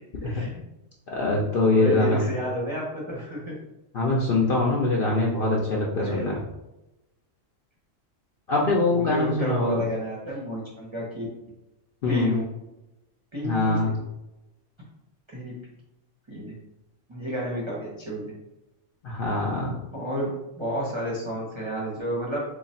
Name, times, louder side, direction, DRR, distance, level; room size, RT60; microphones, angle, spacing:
voice 1, 0.2-0.6 1.7-3.5 6.0-6.3 8.9-11.3 12.1-12.5 13.3-14.0 15.3-15.5 16.3-16.5 17.1-18.3 19.9-20.3 20.6-22.4, equal, 30° right, -4 dB, 0.6 m, -31 dB
voice 2, 1.1-2.2 3.9-6.4 8.5-9.9 12.0-12.3 13.4-14.0 19.0-19.8, left 2 dB, 55° left, -3 dB, 0.6 m, -23 dB
3.1 x 2.4 x 4.1 m, 0.95 s
omnidirectional pair, 1.4 m